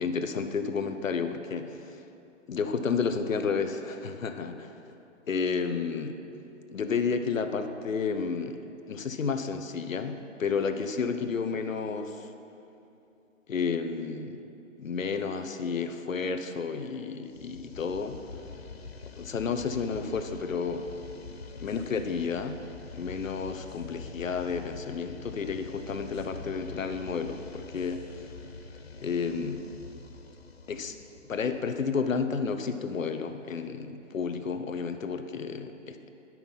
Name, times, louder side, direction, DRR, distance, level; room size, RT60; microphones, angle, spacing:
voice 1, 0.0-2.0 2.5-4.7 5.3-6.2 6.7-8.6 8.9-12.3 13.5-14.4 14.8-18.2 19.2-20.8 21.6-22.6 22.9-28.3 29.0-29.6 30.7-31.0 31.3-36.1, left 5 dB, 80° left, 8 dB, 0.9 m, -31 dB
sound 1, 17.3-32.1, left 4 dB, 50° left, 0.7 m, -45 dB
11.0 x 5.9 x 5.5 m, 2.8 s
hypercardioid pair, 180°, 39 cm